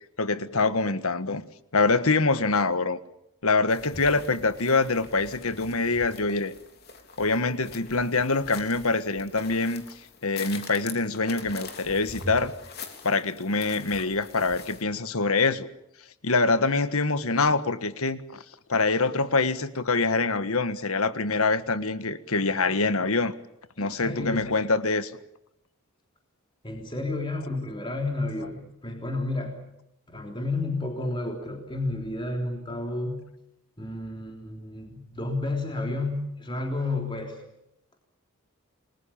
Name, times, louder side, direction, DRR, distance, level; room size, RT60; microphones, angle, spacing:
voice 1, 0.2-1.4 1.7-3.0 3.4-6.5 7.2-9.8 10.2-12.5 13.0-15.7 16.2-18.4 18.7-23.3 23.8-25.1, left 3 dB, 75° left, 12 dB, 1.5 m, -25 dB
sound 1, 3.7-14.8, left 4 dB, 45° left, 3.5 m, -44 dB
voice 2, 23.8-24.5 26.6-29.6 30.1-33.2 33.8-37.4, left 2 dB, 20° left, 2 dB, 3.4 m, -31 dB
30.0 x 21.0 x 7.2 m, 0.80 s
head